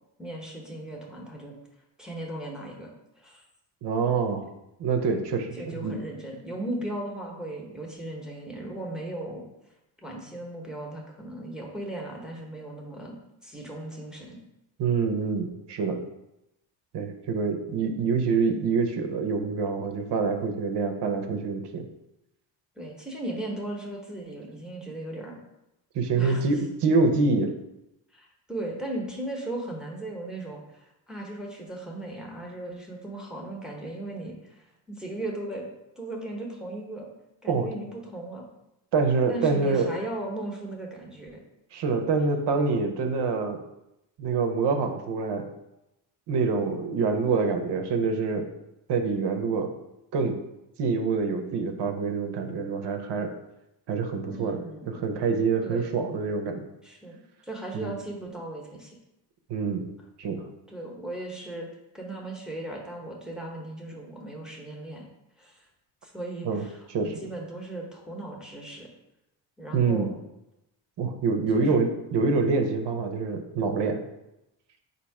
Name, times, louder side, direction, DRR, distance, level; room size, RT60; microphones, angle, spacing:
voice 1, 0.2-1.5 2.0-3.4 5.5-9.4 10.0-14.4 22.8-25.4 26.1-26.4 28.1-35.6 36.0-37.1 37.4-38.5 39.3-41.4 54.3-55.0 55.6-56.0 56.8-59.0 60.7-61.7 61.9-65.1 65.4-65.6 66.0-68.9 69.6-70.2 71.5-71.8, right 1 dB, ahead, -1 dB, 0.9 m, -37 dB
voice 2, 3.8-4.5 4.8-6.0 14.8-16.0 16.9-21.9 25.9-27.5 37.5-37.7 38.9-39.9 41.7-43.6 44.2-45.5 46.3-48.5 48.9-49.7 50.1-50.4 50.8-53.3 53.9-54.6 54.9-56.6 57.7-57.9 59.5-59.8 60.2-60.5 66.4-66.6 66.9-67.1 69.7-70.1 71.0-74.0, right 4 dB, 60° right, 5 dB, 0.7 m, -26 dB
4.1 x 2.7 x 4.7 m, 0.90 s
cardioid pair, 90°, 46 cm